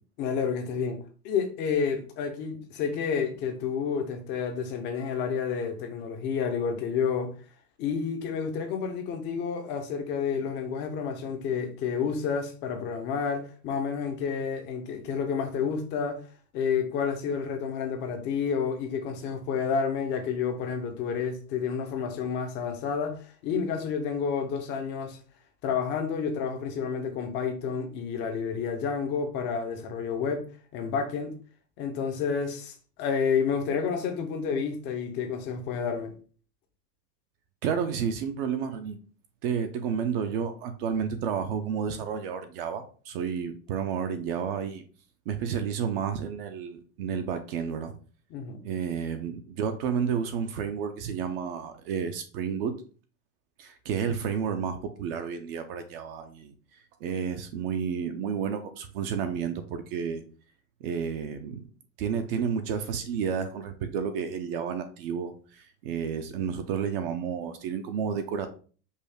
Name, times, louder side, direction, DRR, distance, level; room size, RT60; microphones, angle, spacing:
voice 1, 0.2-7.3 7.8-16.2 16.5-25.2 25.6-30.5 30.7-31.4 31.8-36.2 48.3-48.6, left 6 dB, 25° left, 0.4 m, -30 dB
voice 2, 37.6-39.0 39.4-44.8 45.3-47.9 48.6-52.8 53.6-60.2 60.8-61.6 62.0-68.5, right 7 dB, 40° right, 0.4 m, -31 dB
5.4 x 2.1 x 4.6 m
supercardioid pair, 155°, 49 cm